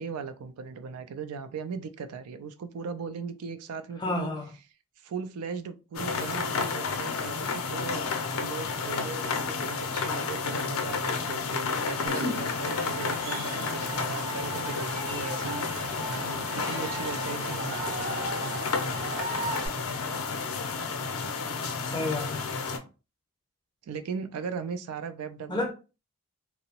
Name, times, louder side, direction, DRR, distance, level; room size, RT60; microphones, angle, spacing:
voice 1, 0.0-4.3 5.0-8.0 8.3-18.2 23.8-25.7, right 5 dB, 90° right, 0.4 m, -38 dB
voice 2, 4.0-4.5 21.9-22.5 25.5-25.7, left 2 dB, 20° left, 0.4 m, -30 dB
sound 1, 5.9-22.8, left 4 dB, 75° left, 0.5 m, -31 dB
Cheering / Crowd, 12.1-19.7, right 2 dB, 65° right, 0.8 m, -36 dB
2.6 x 2.0 x 2.8 m
head